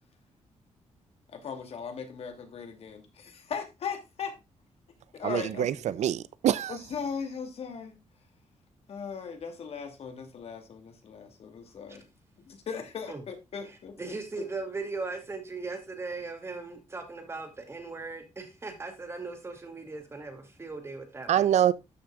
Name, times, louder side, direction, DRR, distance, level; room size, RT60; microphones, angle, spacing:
voice 1, 1.3-4.3 5.1-5.8 6.7-8.0 8.9-12.1 12.4-14.2, left 6 dB, 55° left, 2.6 m, -38 dB
voice 2, 5.2-6.8 21.3-21.7, right 10 dB, 70° right, 0.6 m, -25 dB
voice 3, 13.7-21.5, right 3 dB, 20° right, 2.4 m, -38 dB
13.0 x 6.2 x 2.3 m
wide cardioid pair, 155°, 12 cm